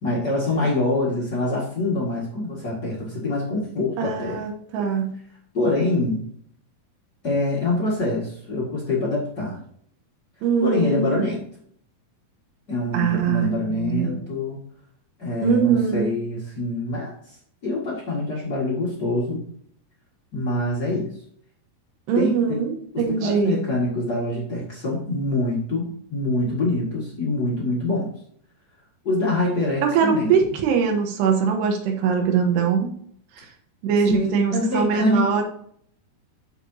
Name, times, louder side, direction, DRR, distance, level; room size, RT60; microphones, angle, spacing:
voice 1, 0.0-4.4 5.5-6.2 7.2-9.6 10.6-11.4 12.7-14.6 15.2-17.3 17.6-19.4 20.3-21.1 22.2-22.3 22.9-28.1 29.0-30.3 34.0-35.2, left 2 dB, 45° left, -5 dB, 1.3 m, -25 dB
voice 2, 4.0-5.1 10.4-11.3 12.9-14.2 15.4-16.1 22.1-23.6 29.8-32.9 33.4-33.5 33.8-35.4, right 6 dB, 85° right, 3 dB, 3.3 m, -22 dB
12.5 x 4.8 x 2.7 m, 0.64 s
omnidirectional pair, 4.7 m